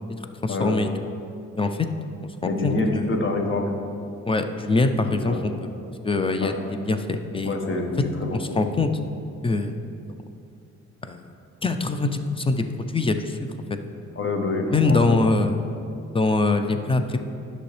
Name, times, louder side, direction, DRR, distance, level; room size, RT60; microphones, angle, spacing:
voice 1, 0.2-0.9 1.6-1.9 2.4-3.1 4.3-5.5 6.0-7.6 8.3-8.9 9.4-9.7 11.0-11.3 11.6-13.4 14.7-15.6 16.1-17.2, left 3 dB, 20° left, 8 dB, 0.5 m, -23 dB
voice 2, 2.4-3.7 5.2-5.4 6.4-6.5 7.4-8.4 14.2-15.2, left 2 dB, 40° left, 3 dB, 1.1 m, -26 dB
10.5 x 6.3 x 3.3 m, 2.5 s
cardioid pair, 90°, 30 cm